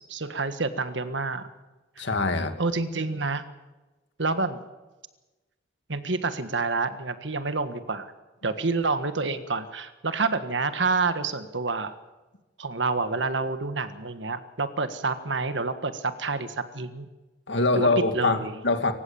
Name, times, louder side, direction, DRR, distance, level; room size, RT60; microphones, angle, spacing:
voice 1, 0.0-1.5 2.0-2.1 2.6-3.4 4.2-4.6 5.9-8.1 8.4-11.9 12.6-17.1 17.7-17.9 18.1-18.5, right 3 dB, 75° right, 10 dB, 1.6 m, -28 dB
voice 2, 2.0-2.5 17.5-18.9, left 3 dB, 75° left, 7 dB, 2.3 m, -24 dB
26.0 x 15.5 x 7.2 m, 1.1 s
head